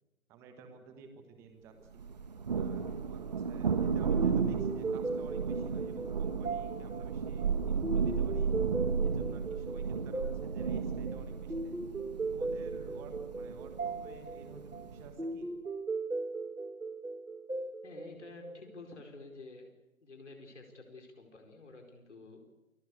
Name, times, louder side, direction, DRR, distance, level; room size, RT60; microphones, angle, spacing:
voice 1, 0.3-2.1 2.6-8.5 9.0-11.8 12.3-15.5, right 4 dB, 5° right, 6 dB, 1.4 m, -53 dB
Thunder, 2.0-15.2, right 6 dB, 30° right, 1.5 m, -34 dB
sound 1, 4.2-18.9, right 3 dB, 85° right, 2.4 m, -38 dB
voice 2, 17.8-19.7 20.0-22.4, left 3 dB, 55° left, 3 dB, 4.7 m, -50 dB
28.5 x 20.5 x 8.4 m, 0.99 s
figure-of-eight pair, 150°, 42 cm